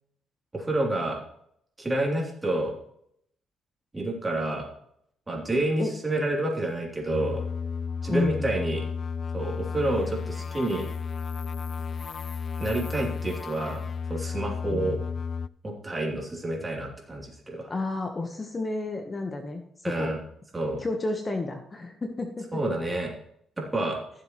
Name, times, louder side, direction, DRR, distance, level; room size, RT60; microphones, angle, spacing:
voice 1, 0.5-1.2 1.8-2.7 3.9-4.7 5.3-7.4 8.0-8.8 9.3-10.9 12.6-15.0 15.6-17.7 19.8-20.2 20.5-20.8 22.5-23.1 23.6-24.0, right 1 dB, 20° right, -1 dB, 3.2 m, -29 dB
sound 1, 7.1-15.5, left 5 dB, 45° left, 0.4 m, -33 dB
voice 2, 8.1-8.5 14.7-15.0 17.7-20.1 20.8-22.6, left 2 dB, 30° left, 4 dB, 1.2 m, -31 dB
15.0 x 7.4 x 3.2 m, 0.71 s
cardioid pair, 90°, 0 cm